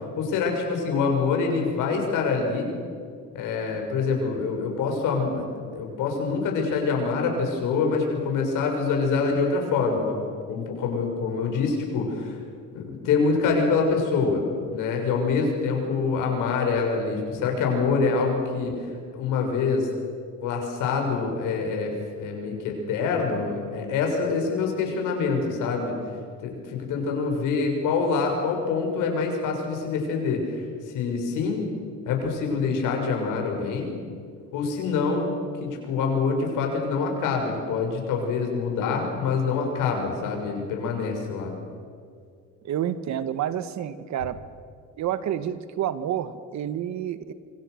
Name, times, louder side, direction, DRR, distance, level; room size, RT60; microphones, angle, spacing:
voice 1, 0.2-2.7 3.3-10.2 10.5-12.4 12.7-14.4 14.7-18.7 19.1-19.9 20.4-25.9 26.4-31.6 32.1-33.9 34.5-35.3 35.6-41.5, left 4 dB, 80° left, 2 dB, 6.5 m, -25 dB
voice 2, 42.6-44.4 45.0-47.3, right 10 dB, 65° right, 12 dB, 1.5 m, -29 dB
26.5 x 25.5 x 6.5 m, 2.2 s
cardioid pair, 110°, 31 cm